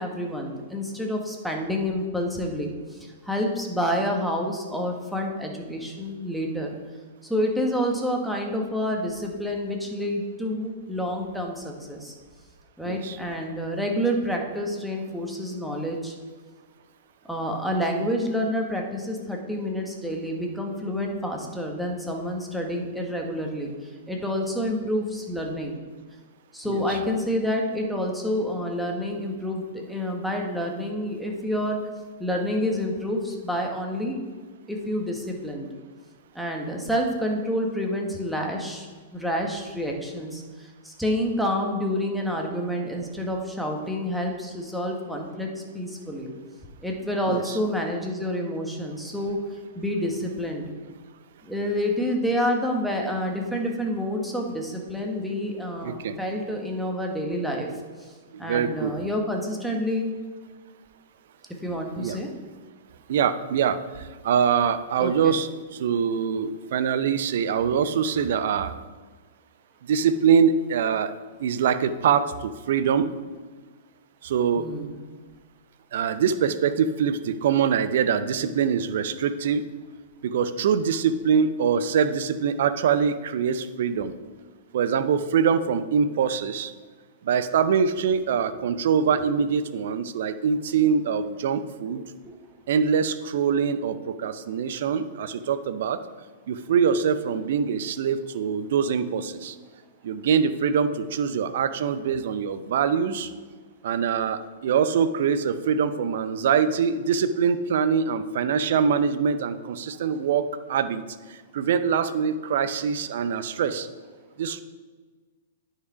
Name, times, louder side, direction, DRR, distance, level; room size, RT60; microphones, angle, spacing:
voice 1, 0.0-6.8 7.3-12.1 12.8-16.1 17.3-23.7 24.1-25.8 26.5-31.8 32.2-34.2 34.7-35.7 36.3-38.9 39.1-45.5 45.7-46.3 46.8-49.4 49.7-50.6 51.4-57.7 58.4-60.1 61.6-62.3 65.0-65.3 74.6-75.0 92.2-92.4, equal, ahead, 0 dB, 1.5 m, -28 dB
voice 2, 12.8-13.2 26.7-27.0 47.3-47.6 55.8-56.2 58.3-58.9 62.0-62.2 63.1-68.7 69.8-71.1 71.4-73.1 74.2-74.7 75.9-79.6 80.2-84.1 84.7-86.7 87.2-92.0 92.7-96.0 96.5-99.6 100.0-103.3 103.8-111.0 111.3-113.9 114.4-114.6, right 7 dB, 55° right, 12 dB, 0.6 m, -24 dB
9.7 x 5.8 x 4.8 m, 1.4 s
figure-of-eight pair, 105°, 0 cm